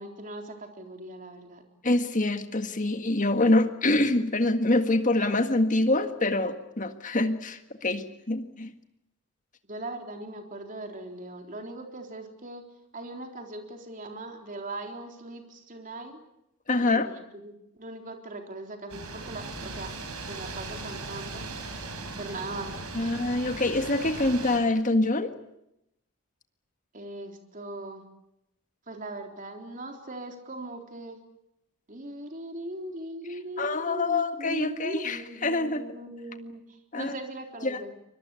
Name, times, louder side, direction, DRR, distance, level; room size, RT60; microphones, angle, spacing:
voice 1, 0.0-1.6 9.7-12.6 12.9-16.2 16.8-19.9 20.3-21.5 22.2-23.1 26.9-28.0 28.9-31.2 31.9-36.6 36.9-37.9, right 1 dB, 35° right, 4 dB, 3.8 m, -40 dB
voice 2, 1.8-8.7 16.7-17.1 22.9-25.4 33.6-35.8 36.9-37.1 37.6-37.8, left 2 dB, 35° left, 8 dB, 1.8 m, -25 dB
sound 1, 18.9-24.6, right 3 dB, 85° right, 5.5 m, -38 dB
24.5 x 22.0 x 8.5 m, 0.85 s
head